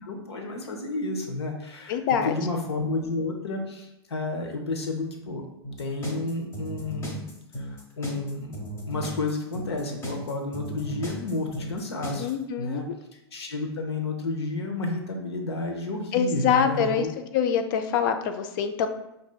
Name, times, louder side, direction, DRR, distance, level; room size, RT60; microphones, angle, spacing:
voice 1, 0.0-2.0 2.2-5.4 5.8-7.3 7.6-8.6 8.9-12.3 12.6-12.8 13.3-17.1, left 2 dB, 75° left, 2 dB, 0.9 m, -31 dB
voice 2, 1.9-2.3 12.2-12.9 16.1-17.1 17.3-18.9, left 7 dB, 50° left, 8 dB, 0.4 m, -25 dB
sound 1, 5.6-12.3, equal, 20° left, 1.0 m, -36 dB
5.9 x 2.6 x 2.3 m, 0.84 s
figure-of-eight pair, 100°, 14 cm